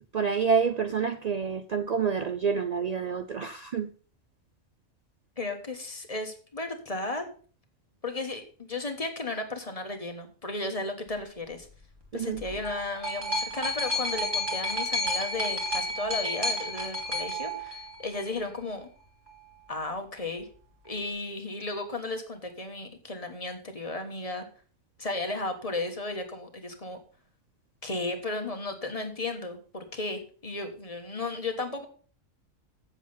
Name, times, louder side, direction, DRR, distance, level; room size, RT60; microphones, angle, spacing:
voice 1, 0.1-3.9 12.1-12.4, right 6 dB, 80° right, 0.3 m, -28 dB
voice 2, 5.4-7.2 8.0-11.7 12.1-18.9 19.7-20.5 20.8-24.4 25.0-27.0 27.8-31.9, left 2 dB, 25° left, 1.4 m, -34 dB
sound 1, 12.4-18.4 19.3-19.4, left 1 dB, 20° right, 2.4 m, -31 dB
7.8 x 7.4 x 5.5 m
omnidirectional pair, 1.4 m